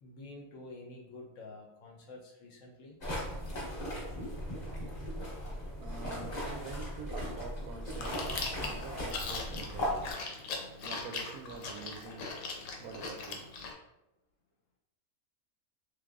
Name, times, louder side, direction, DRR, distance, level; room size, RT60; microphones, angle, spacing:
voice 1, 0.0-3.0, left 2 dB, 70° left, -1 dB, 0.9 m, -49 dB
sound 1, 3.0-10.1, equal, 35° left, 0.9 m, -38 dB
voice 2, 5.8-10.1 10.8-12.3 12.8-13.4, right 5 dB, 80° right, 4 dB, 1.1 m, -46 dB
Chewing mastication, 7.9-13.7, left 4 dB, 85° left, 1.2 m, -40 dB
3.6 x 3.2 x 2.4 m, 0.92 s
omnidirectional pair, 1.6 m